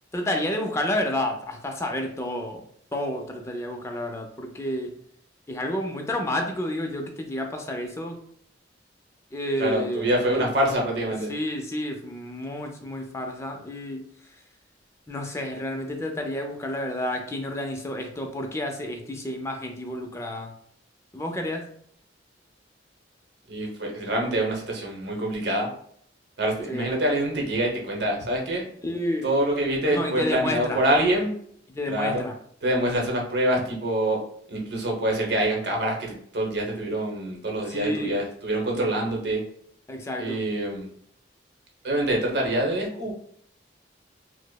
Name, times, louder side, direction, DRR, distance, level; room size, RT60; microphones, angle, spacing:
voice 1, 0.1-2.6 2.9-5.0 5.5-8.2 9.3-10.5 11.3-14.0 15.1-20.5 21.1-21.7 26.7-27.0 28.8-29.3 29.9-30.8 31.7-32.3 37.7-38.2 39.9-40.4, left 1 dB, 15° left, 3 dB, 0.4 m, -30 dB
voice 2, 9.6-11.3 23.5-25.7 26.4-28.6 29.2-31.3 31.9-32.2 32.6-34.2 34.5-39.4 40.2-40.9 41.8-43.1, right 1 dB, 60° right, 0 dB, 0.8 m, -25 dB
4.8 x 2.0 x 2.2 m, 0.64 s
head